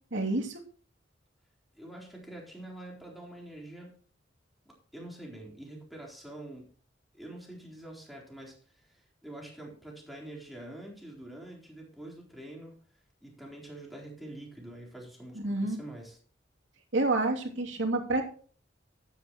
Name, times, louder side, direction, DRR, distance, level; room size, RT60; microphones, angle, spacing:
voice 1, 0.1-0.6 15.4-15.8 16.9-18.2, right 2 dB, 85° right, 2 dB, 2.8 m, -28 dB
voice 2, 1.7-4.0 4.7-6.7 7.1-12.8 13.2-16.2, right 1 dB, ahead, -2 dB, 4.0 m, -46 dB
13.0 x 10.0 x 3.1 m, 0.42 s
head